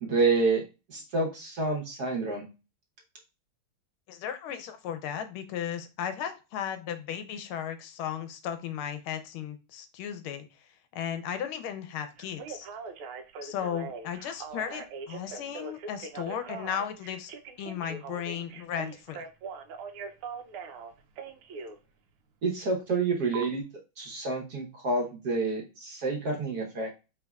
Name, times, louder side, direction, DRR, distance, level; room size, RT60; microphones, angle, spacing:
voice 1, 0.0-0.6 0.9-2.5 22.4-23.6 24.0-26.9, right 3 dB, 55° right, 0 dB, 1.3 m, -28 dB
voice 2, 4.1-10.5 10.9-12.7 13.4-17.3 17.6-19.2, left 9 dB, 85° left, 9 dB, 1.5 m, -35 dB
Telephone, 12.2-21.8 23.3-23.5, right 5 dB, 85° right, 1.5 m, -41 dB
4.6 x 3.3 x 2.3 m, 0.29 s
omnidirectional pair, 2.3 m